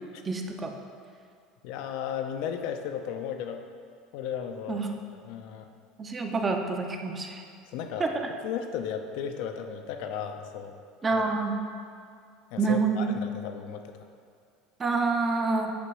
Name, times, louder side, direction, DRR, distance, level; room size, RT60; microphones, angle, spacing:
voice 1, 0.2-0.7 4.7-4.9 6.0-7.4 8.0-8.3 11.0-11.6 12.6-13.2 14.8-15.7, right 4 dB, 25° right, 3 dB, 0.8 m, -27 dB
voice 2, 1.6-3.6 4.1-4.8 5.2-5.7 7.7-8.1 8.4-10.8 11.1-11.2 12.5-13.9, left 8 dB, 70° left, 6 dB, 0.6 m, -35 dB
8.3 x 3.0 x 6.2 m, 2.3 s
supercardioid pair, 95°, 0 cm